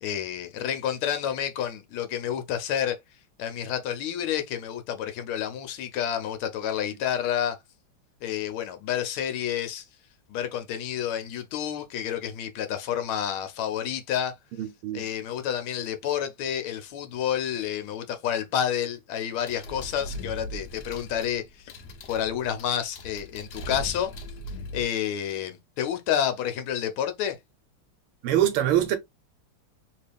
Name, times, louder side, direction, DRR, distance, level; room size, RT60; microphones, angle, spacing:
voice 1, 0.0-3.0 3.4-7.6 8.2-9.8 10.3-14.3 14.9-21.4 22.1-24.1 24.7-27.4, left 9 dB, 80° left, 1.5 m, -29 dB
voice 2, 14.6-15.1 28.2-29.0, right 11 dB, 80° right, 1.6 m, -24 dB
sound 1, 19.5-24.8, left 1 dB, 65° left, 1.1 m, -39 dB
3.1 x 3.0 x 3.3 m
omnidirectional pair, 2.4 m